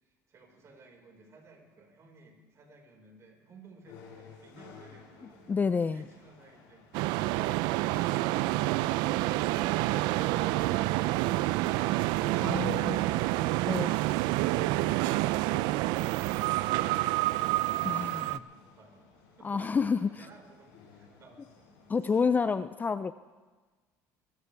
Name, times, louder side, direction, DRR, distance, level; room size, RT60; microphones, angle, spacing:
voice 1, 0.0-6.9 17.8-19.8 20.1-22.4, right 3 dB, 40° right, 1 dB, 5.0 m, -58 dB
sound 1, 3.8-22.0, left 6 dB, 80° left, 4.6 m, -57 dB
voice 2, 5.5-6.0 12.4-13.1 13.7-13.9 17.8-18.4 19.4-20.1 21.9-23.1, left 5 dB, 25° left, 13 dB, 0.4 m, -29 dB
sound 2, 6.9-18.4, right 17 dB, 75° right, 0.4 m, -28 dB
23.0 x 14.5 x 3.5 m, 1.3 s
supercardioid pair, 100°, 8 cm